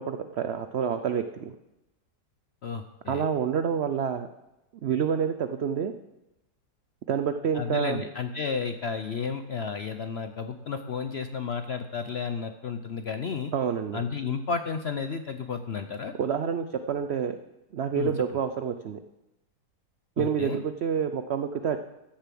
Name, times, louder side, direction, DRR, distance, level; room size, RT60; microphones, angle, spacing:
voice 1, 0.0-1.5 3.1-4.3 4.8-5.9 7.1-8.0 13.5-14.0 16.2-17.4 17.7-19.0 20.2-21.8, right 7 dB, 85° right, 9 dB, 0.5 m, -28 dB
voice 2, 2.6-3.3 7.5-13.5 13.9-16.1 17.9-18.2 20.2-20.6, left 5 dB, 65° left, 8 dB, 0.6 m, -32 dB
13.0 x 6.9 x 7.5 m, 0.96 s
omnidirectional pair, 1.8 m